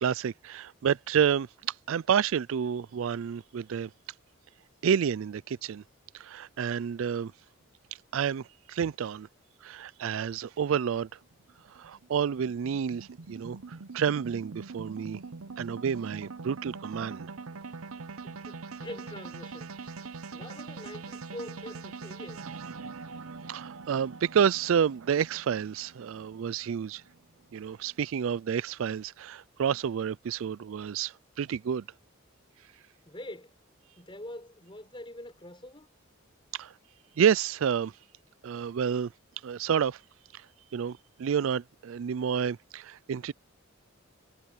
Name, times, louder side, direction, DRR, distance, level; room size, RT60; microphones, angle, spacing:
voice 1, 0.0-3.9 4.8-5.8 6.1-7.3 8.1-9.3 9.6-11.1 11.7-15.2 15.6-17.3 23.5-27.0 27.5-31.8 36.5-36.7 37.2-37.9 38.4-39.1 39.4-40.0 40.3-40.4 40.7-43.3, right 7 dB, 65° right, 0.4 m, -29 dB
sound 1, 11.0-27.4, right 4 dB, 85° right, 0.8 m, -43 dB
voice 2, 18.2-19.9 20.3-22.4 33.1-33.6 34.0-35.9, left 1 dB, 25° left, 4.0 m, -44 dB
head